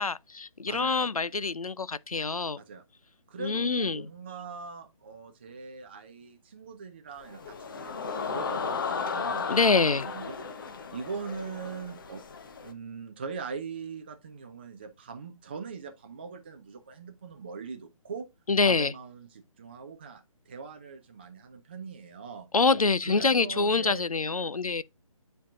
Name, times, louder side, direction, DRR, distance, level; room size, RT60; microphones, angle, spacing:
voice 1, 0.0-2.6 3.4-4.1 9.5-10.0 18.5-18.9 22.5-24.8, left 4 dB, 80° left, 0.5 m, -25 dB
voice 2, 0.7-1.1 2.6-2.8 3.3-7.9 8.2-10.3 10.9-12.2 12.6-18.3 18.6-22.5 23.0-24.0, right 5 dB, 20° right, 0.4 m, -41 dB
sound 1, 7.2-12.7, left 5 dB, 35° left, 0.9 m, -35 dB
9.9 x 4.6 x 2.4 m
figure-of-eight pair, 145°, 18 cm